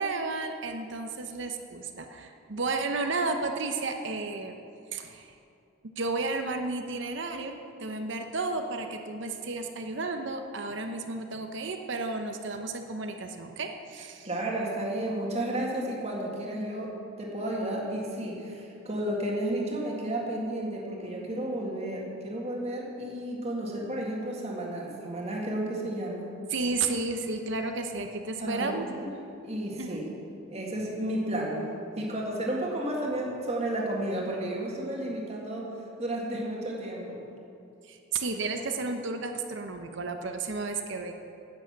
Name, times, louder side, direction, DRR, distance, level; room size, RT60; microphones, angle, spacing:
voice 1, 0.0-4.6 4.9-5.3 6.0-14.3 26.5-28.9 29.8-30.0 37.8-41.1, right 3 dB, 60° right, 5 dB, 0.8 m, -32 dB
voice 2, 14.2-16.9 17.2-26.3 28.4-29.1 29.4-30.0 30.5-31.6 32.0-35.7 36.0-37.2, right 1 dB, 30° right, -2 dB, 1.9 m, -32 dB
10.5 x 8.5 x 7.3 m, 2.6 s
head